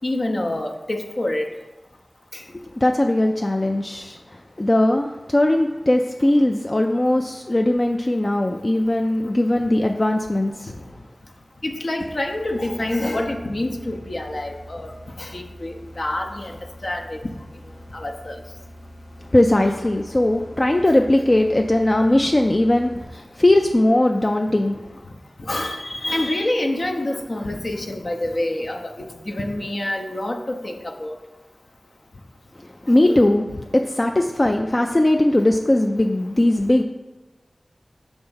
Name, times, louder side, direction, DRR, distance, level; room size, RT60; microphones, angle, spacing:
voice 1, 0.0-1.5 2.3-2.4 10.7-10.8 11.6-17.2 17.9-18.4 25.0-25.1 25.4-31.2 32.9-33.2, left 1 dB, 55° left, 2 dB, 0.7 m, -27 dB
voice 2, 2.8-10.7 19.3-24.8 32.6-36.8, left 1 dB, 35° left, 3 dB, 0.3 m, -19 dB
sound 1, 12.0-23.4, equal, ahead, 0.7 m, -43 dB
5.3 x 3.4 x 5.5 m, 1.2 s
wide cardioid pair, 50°, 0 cm